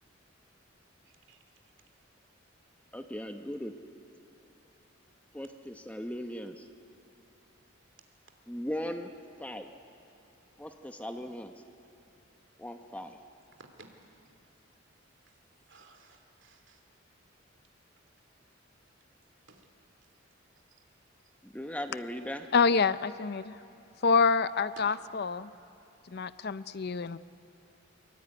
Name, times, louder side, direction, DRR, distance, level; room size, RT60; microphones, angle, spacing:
voice 1, 1.0-1.7 13.6-14.0 15.2-15.4 15.7-16.8 19.5-19.7, right 3 dB, 65° right, 5 dB, 3.0 m, -58 dB
voice 2, 2.9-3.7 5.3-6.7 8.5-9.1 9.4-9.7 10.6-11.5 12.6-13.2 21.4-22.5, equal, 5° left, 6 dB, 0.9 m, -38 dB
voice 3, 22.5-23.6 24.0-25.5 26.1-27.2, left 5 dB, 50° left, 15 dB, 0.5 m, -27 dB
23.5 x 23.0 x 9.6 m, 2.7 s
head